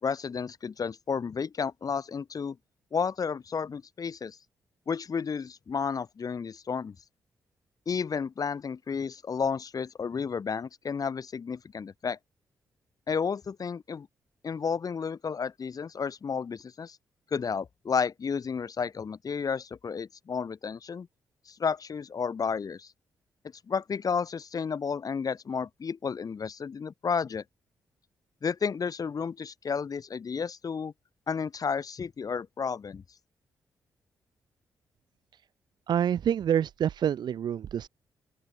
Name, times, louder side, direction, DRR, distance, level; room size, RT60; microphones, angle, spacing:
voice 1, 0.0-2.6 2.9-4.4 4.9-6.9 7.8-12.2 13.1-14.1 14.4-17.0 17.3-21.1 21.5-22.9 23.7-27.4 28.4-30.9 31.3-33.0, left 6 dB, 50° left, 3.3 m, -32 dB
voice 2, 35.9-37.9, right 9 dB, 70° right, 1.0 m, -27 dB
open air
supercardioid pair, 55°, 8 cm